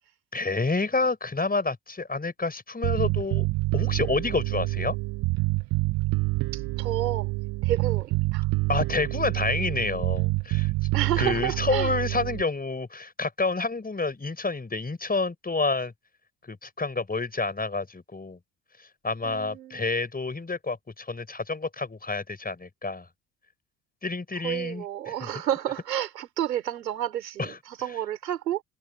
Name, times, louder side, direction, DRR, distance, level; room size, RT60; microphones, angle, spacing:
voice 1, 0.3-3.5 3.7-5.0 8.7-10.7 11.2-15.9 16.4-18.4 19.0-23.1 24.0-25.1 27.4-27.5, left 3 dB, 20° left, 5.6 m, -29 dB
Bass guitar, 2.8-12.4, right 22 dB, 50° right, 0.6 m, -27 dB
voice 2, 6.5-7.3 7.6-8.5 10.9-11.9 19.2-19.9 24.4-28.6, right 11 dB, 90° right, 4.4 m, -30 dB
hypercardioid pair, 65°, 48 cm